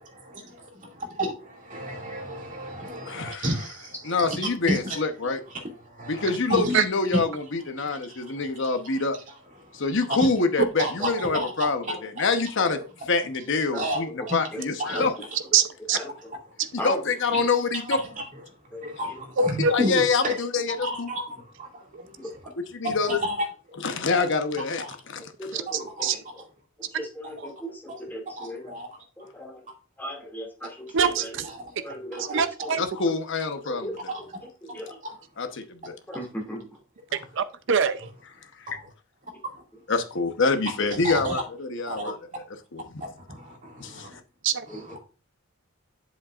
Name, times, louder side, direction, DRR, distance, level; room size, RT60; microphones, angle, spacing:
voice 1, 0.2-5.0 5.8-6.8 7.8-8.9 9.6-9.8 10.8-11.7 13.7-14.4 14.8-15.1 17.3-17.8 18.2-18.3 18.8-20.3 20.7-22.2 22.8-23.8 24.8-24.9 26.0-26.1 28.4-28.9 29.2-29.3 31.4-31.7 32.1-32.7 34.7-34.8 35.0-35.1 38.7-38.9 39.4-39.6 41.0-41.4 41.9-42.1 43.3-44.1 44.7-45.0, equal, 40° right, 2.3 m, -32 dB
voice 2, 3.1-3.5 4.0-5.4 6.1-9.2 9.7-12.8 13.1-15.1 15.9-16.0 16.8-18.0 19.7-21.1 22.7-23.2 23.8-25.3 32.8-33.9 35.4-36.0 38.6-38.7 39.9-42.2 42.7-43.1 43.8-44.2, left 4 dB, 65° left, 1.0 m, -26 dB
voice 3, 11.0-11.3 11.9-12.0 13.7-14.1 14.5-15.3 15.9-16.1 16.8-17.0 17.3-17.4 18.7-19.1 20.2-20.3 22.2-22.3 25.2-26.4 26.8-28.7 29.2-29.7 30.0-31.4 31.8-32.8 33.6-34.2 34.6-35.0 36.1-36.7 44.7-45.0, equal, 10° left, 2.3 m, -38 dB
voice 4, 15.5-16.0 19.4-19.7 26.0-26.2 30.9-31.2 32.3-32.8 37.4-38.0 44.4-44.6, right 6 dB, 65° right, 0.6 m, -23 dB
7.9 x 7.5 x 2.4 m
head